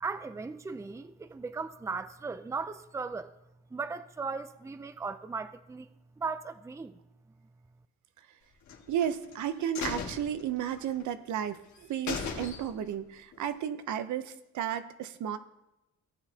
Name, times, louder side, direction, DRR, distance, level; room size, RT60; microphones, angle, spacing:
voice 1, 0.0-3.3 3.7-5.9 6.2-7.0, right 4 dB, 10° right, 0.5 m, -37 dB
sound 1, 8.7-9.4 9.7-11.0 11.4-11.5 11.8-11.9 12.1-13.0 13.3-13.4, left 6 dB, 70° left, 2.0 m, -37 dB
voice 2, 8.9-15.4, right 9 dB, 75° right, 0.8 m, -33 dB
17.0 x 8.1 x 2.8 m
cardioid pair, 90°, 30 cm